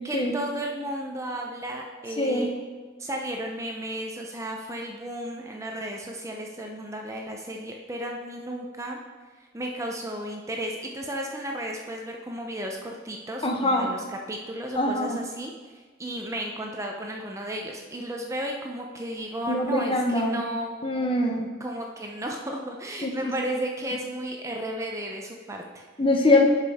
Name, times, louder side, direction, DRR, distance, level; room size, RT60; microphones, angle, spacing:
voice 1, 0.0-2.5 3.0-9.0 9.5-15.5 16.0-21.1 21.6-25.8, right 1 dB, 15° right, 1 dB, 0.5 m, -34 dB
voice 2, 2.2-2.5 13.4-13.9 14.8-15.2 19.5-20.4 20.8-21.5 23.0-23.3 26.0-26.5, left 2 dB, 25° left, 2 dB, 0.8 m, -23 dB
11.0 x 5.2 x 3.5 m, 1.4 s
head